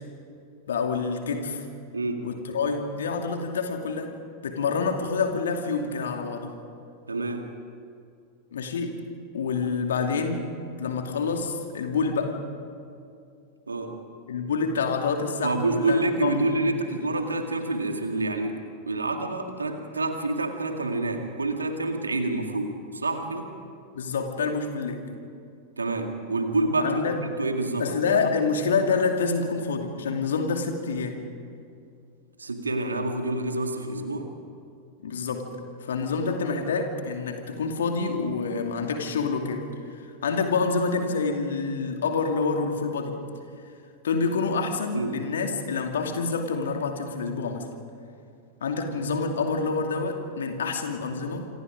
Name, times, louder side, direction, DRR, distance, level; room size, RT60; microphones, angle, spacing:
voice 1, 0.7-1.6 2.2-4.1 4.4-6.5 8.5-9.0 9.3-10.5 10.8-12.4 14.3-16.4 23.9-25.0 26.8-27.2 27.8-31.2 35.0-35.5 35.8-43.2 44.0-47.7 48.6-51.5, left 4 dB, 65° left, 4 dB, 2.6 m, -27 dB
voice 2, 1.9-2.3 7.1-7.5 13.7-14.0 15.4-23.5 25.8-27.0 27.4-27.9 32.4-34.3 44.9-45.2, right 2 dB, 75° right, 4 dB, 2.3 m, -27 dB
27.0 x 25.5 x 5.2 m, 2.4 s
figure-of-eight pair, 90°, 0 cm